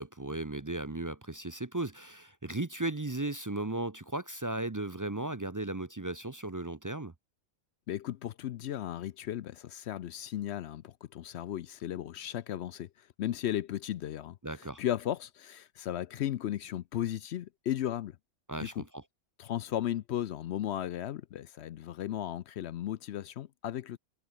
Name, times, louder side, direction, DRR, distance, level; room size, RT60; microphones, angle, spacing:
voice 1, 0.0-7.1 14.4-14.8 18.5-19.0, right 2 dB, 25° right, 0.4 m, -36 dB
voice 2, 7.9-18.2 18.6-18.8 19.4-24.0, left 11 dB, 65° left, 0.7 m, -35 dB
omnidirectional pair, 1.5 m